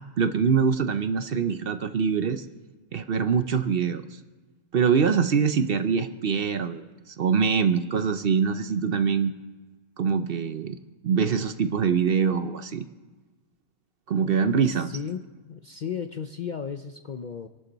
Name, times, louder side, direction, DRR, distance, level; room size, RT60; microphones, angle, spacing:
voice 1, 0.2-2.5 2.9-4.0 4.7-9.3 10.0-10.8 11.0-12.8 14.1-14.9, right 6 dB, 55° right, 10 dB, 0.7 m, -24 dB
voice 2, 14.6-17.5, left 7 dB, 65° left, 7 dB, 0.4 m, -35 dB
27.0 x 11.5 x 4.0 m, 1.3 s
omnidirectional pair, 1.5 m